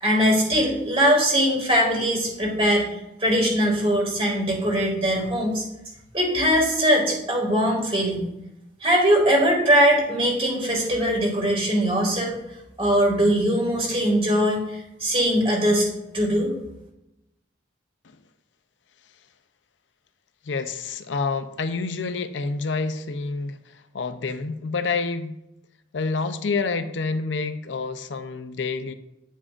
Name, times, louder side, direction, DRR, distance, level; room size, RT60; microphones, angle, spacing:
voice 1, 0.0-2.8 3.2-5.6 6.1-8.3 8.8-12.3 12.8-14.6 15.0-15.9 16.1-16.5, equal, 30° right, -1 dB, 2.1 m, -21 dB
voice 2, 20.5-23.6 23.9-25.3 25.9-28.9, left 4 dB, 80° left, 9 dB, 0.6 m, -28 dB
9.7 x 7.4 x 2.5 m, 0.87 s
head